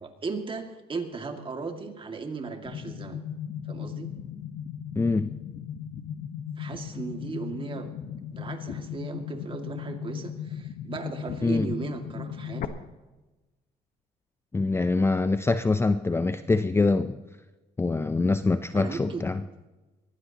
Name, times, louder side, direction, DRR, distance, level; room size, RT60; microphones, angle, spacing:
voice 1, 0.0-3.2 3.7-4.1 6.6-7.9 8.3-12.7 18.7-19.2, right 4 dB, 30° right, 4 dB, 2.3 m, -36 dB
sound 1, 2.7-12.7, left 8 dB, 55° left, 1.3 m, -37 dB
voice 2, 5.0-5.3 11.4-11.7 14.5-17.2 17.8-19.4, left 3 dB, 15° left, 11 dB, 0.6 m, -24 dB
22.0 x 16.0 x 3.0 m, 1.1 s
cardioid pair, 110°, 17 cm